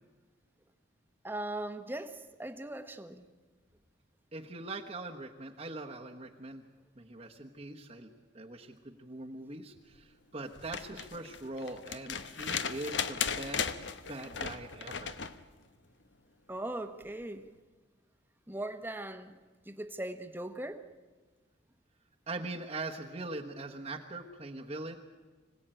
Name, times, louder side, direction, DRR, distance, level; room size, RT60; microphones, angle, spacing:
voice 1, 1.2-3.2 11.1-11.2 16.5-17.5 18.5-19.4 19.7-20.9, right 1 dB, 10° right, 1.2 m, -39 dB
voice 2, 4.3-6.6 7.0-13.7 14.1-15.1 22.3-25.0, right 2 dB, 35° right, 1.3 m, -42 dB
sound 1, 10.5-15.4 17.0-17.1, left 7 dB, 75° left, 1.0 m, -36 dB
25.5 x 17.0 x 9.0 m
head